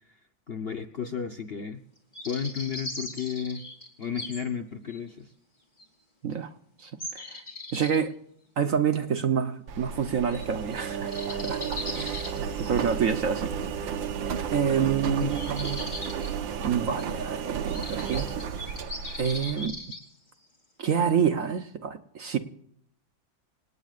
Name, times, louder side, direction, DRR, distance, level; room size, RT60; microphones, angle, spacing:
voice 1, 0.5-1.8 2.2-3.6 4.0-5.3 15.0-15.3, left 7 dB, 45° left, 0.9 m, -33 dB
sound 1, 2.1-4.4 4.9-5.0 5.8-5.9 7.0-8.0 10.3-10.5 10.7-10.8 11.1-12.9 15.2-16.3 17.0-17.1 17.7-20.0, left 1 dB, 25° left, 3.4 m, -39 dB
voice 2, 6.2-6.5 6.8-7.4 7.7-8.1 8.6-11.6 11.9-13.5 14.5-15.8 16.6-18.3 19.2-19.8 20.8-22.4, right 7 dB, 55° right, 1.1 m, -28 dB
Engine, 9.7-19.7, right 7 dB, 85° right, 1.9 m, -33 dB
26.5 x 18.5 x 2.5 m
omnidirectional pair, 2.0 m